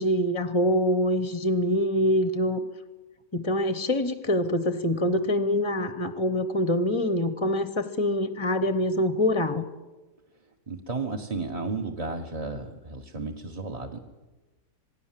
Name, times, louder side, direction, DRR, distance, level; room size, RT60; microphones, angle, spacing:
voice 1, 0.0-2.6 3.3-9.6, left 1 dB, 20° left, 11 dB, 0.8 m, -25 dB
voice 2, 10.7-14.0, right 3 dB, 25° right, 2 dB, 1.2 m, -33 dB
27.0 x 18.5 x 7.6 m, 1.2 s
omnidirectional pair, 1.8 m